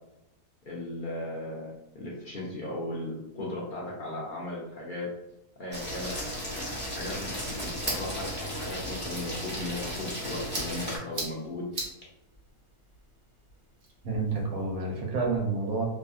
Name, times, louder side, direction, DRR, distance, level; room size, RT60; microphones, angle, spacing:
voice 1, 0.6-5.1 5.6-6.1 6.4-6.5 7.0-11.7, left 1 dB, 65° left, -5 dB, 0.5 m, -37 dB
sound 1, 5.7-11.0, equal, 10° left, 0.6 m, -35 dB
sound 2, 6.8-14.7, right 2 dB, 50° right, 0.9 m, -42 dB
voice 2, 14.0-15.9, right 3 dB, 75° right, 0 dB, 1.2 m, -29 dB
2.7 x 2.5 x 2.4 m, 0.89 s
omnidirectional pair, 1.6 m